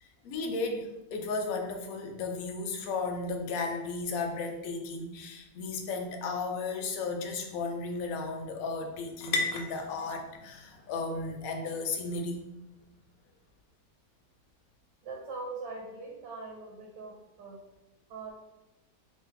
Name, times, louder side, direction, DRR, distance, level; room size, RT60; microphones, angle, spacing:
voice 1, 0.0-12.4, left 3 dB, 75° left, 3 dB, 0.8 m, -34 dB
sound 1, 5.7-13.6, left 3 dB, 90° left, 1.3 m, -41 dB
voice 2, 15.0-17.6 18.1-18.3, right 3 dB, 80° right, -1 dB, 1.3 m, -41 dB
3.1 x 2.7 x 3.8 m, 0.96 s
omnidirectional pair, 1.9 m